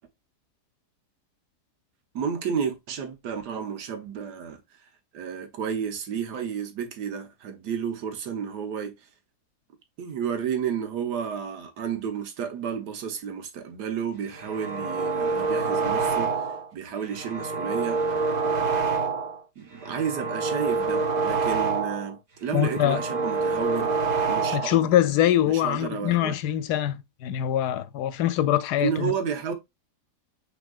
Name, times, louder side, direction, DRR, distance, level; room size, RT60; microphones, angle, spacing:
voice 1, 2.1-9.1 10.0-18.0 19.6-24.0 24.3-24.9 25.4-26.3 28.8-29.5, right 7 dB, 85° right, 1.5 m, -31 dB
sound 1, 14.3-16.7 17.0-19.4 19.8-22.1 22.5-24.8, right 4 dB, 35° right, 0.8 m, -27 dB
voice 2, 22.5-23.0 24.5-29.1, left 12 dB, 80° left, 1.1 m, -23 dB
6.1 x 3.5 x 2.3 m
omnidirectional pair, 1.7 m